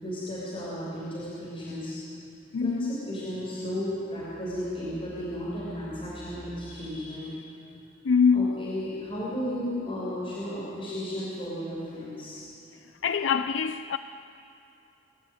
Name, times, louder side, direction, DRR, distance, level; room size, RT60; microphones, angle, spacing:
voice 1, 0.0-2.0 2.6-7.5 8.3-12.4, equal, 30° left, 6.4 m, -34 dB
voice 2, 2.5-2.9 8.0-8.5 13.0-14.0, left 6 dB, 90° left, 0.5 m, -24 dB
24.5 x 14.5 x 9.6 m
head